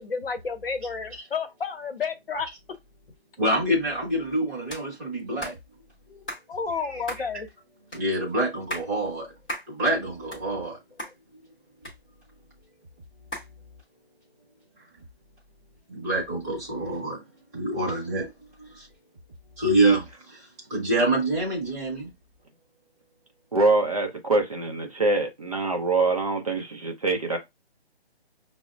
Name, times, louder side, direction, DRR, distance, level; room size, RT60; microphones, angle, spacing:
voice 1, 0.0-2.5 6.5-7.5, left 5 dB, 60° left, 0.8 m, -31 dB
voice 2, 3.4-5.5 6.1-6.2 6.8-7.0 7.9-9.3 9.7-10.8 15.9-17.2 17.5-18.3 18.6-18.9 19.6-22.1, right 1 dB, 15° right, 1.0 m, -26 dB
sound 1, 4.7-4.9 5.4-5.6 6.3-6.4 7.1-7.3 7.9-8.0 8.5-8.9 9.5-9.7 10.1-10.7 11.0-11.1 11.8-12.4 13.3-13.5, equal, 10° left, 0.6 m, -35 dB
voice 3, 23.5-27.4, right 3 dB, 35° right, 0.5 m, -24 dB
5.7 x 2.1 x 2.3 m
hypercardioid pair, 160°, 32 cm